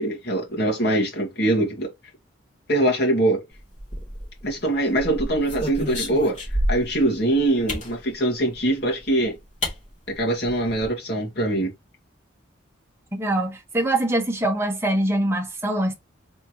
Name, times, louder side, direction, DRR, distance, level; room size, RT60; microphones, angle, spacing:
voice 1, 0.0-1.9 2.7-3.4 4.4-6.4 6.7-9.4 10.2-11.7, right 1 dB, 55° left, 1.8 m, -23 dB
sound 1, 3.8-4.5 5.0-7.0 7.7-7.9 9.0-9.1 9.6-9.8 10.1-10.2 10.5-10.9, equal, 35° left, 2.6 m, -28 dB
voice 2, 13.2-15.9, right 1 dB, 10° right, 0.9 m, -23 dB
4.3 x 3.6 x 3.0 m
head